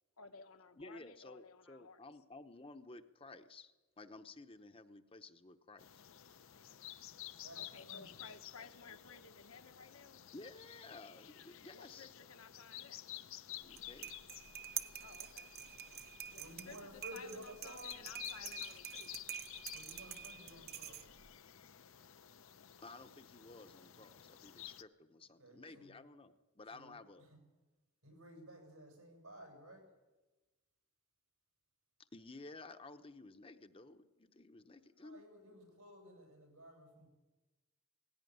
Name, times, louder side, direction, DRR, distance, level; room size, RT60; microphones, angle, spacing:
voice 1, 0.2-2.0 7.5-10.2 11.7-13.0 15.0-15.5 16.3-19.1, left 4 dB, 80° left, 6 dB, 1.5 m, -56 dB
voice 2, 0.8-3.7 4.0-6.0 10.3-12.1 13.6-14.1 22.8-27.3 32.1-35.2, left 3 dB, 25° left, 8 dB, 0.9 m, -54 dB
sound 1, 5.8-24.8, left 12 dB, 65° left, 0.7 m, -52 dB
voice 3, 7.4-8.2 16.3-18.0 19.7-21.0 25.4-25.9 26.7-27.0 28.0-29.8 35.0-37.1, right 1 dB, 85° right, 2 dB, 7.4 m, -54 dB
sound 2, 13.6-21.3, right 10 dB, 45° right, 0.8 m, -47 dB
18.5 x 16.5 x 9.3 m, 1.2 s
head